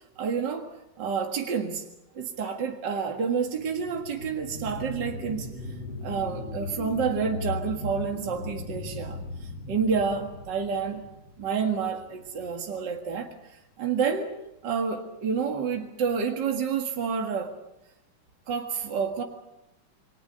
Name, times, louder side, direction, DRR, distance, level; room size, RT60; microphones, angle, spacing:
voice 1, 0.2-0.7 1.0-1.8 2.1-5.5 6.0-9.2 9.7-11.0 11.4-13.3 13.8-14.3 14.6-17.5 18.5-19.2, right 6 dB, 60° right, 3 dB, 2.5 m, -29 dB
sound 1, 3.4-12.5 12.9-13.0, left 2 dB, 75° left, 4.4 m, -38 dB
28.5 x 22.0 x 6.8 m, 0.87 s
omnidirectional pair, 2.2 m